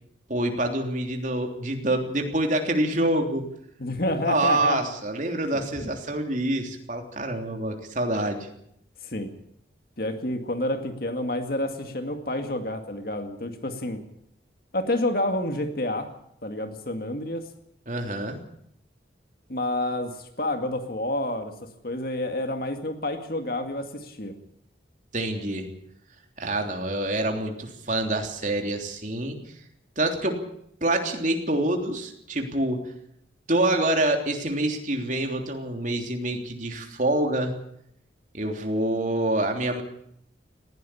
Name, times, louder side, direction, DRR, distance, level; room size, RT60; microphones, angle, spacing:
voice 1, 0.3-3.4 4.2-8.5 17.9-18.4 25.1-25.6 26.4-29.4 30.0-30.4 30.8-32.8 33.5-37.5 38.3-39.8, right 1 dB, 45° right, 4 dB, 3.3 m, -26 dB
voice 2, 3.8-4.8 5.5-5.9 9.0-9.3 10.0-14.0 14.7-16.1 16.4-17.5 19.5-21.5 21.8-24.3, left 1 dB, 50° left, 6 dB, 2.1 m, -29 dB
19.5 x 16.0 x 8.6 m, 0.73 s
head